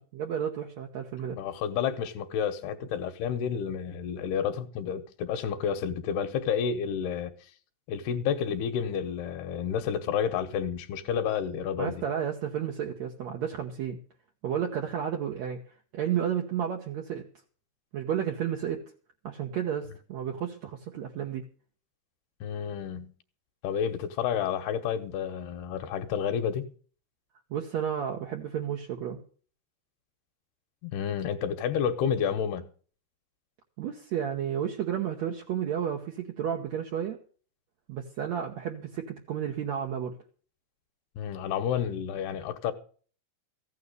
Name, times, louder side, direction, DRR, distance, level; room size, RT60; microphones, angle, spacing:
voice 1, 0.1-1.4 11.8-14.0 14.4-15.6 15.9-17.3 17.9-18.8 19.2-21.4 27.5-29.2 33.8-37.2 37.9-40.1, right 9 dB, 80° right, 1.6 m, -32 dB
voice 2, 1.4-7.3 7.9-12.0 22.4-23.1 23.6-26.7 30.8-32.7 41.2-42.7, left 8 dB, 75° left, 2.8 m, -30 dB
15.0 x 9.4 x 6.7 m
omnidirectional pair, 4.9 m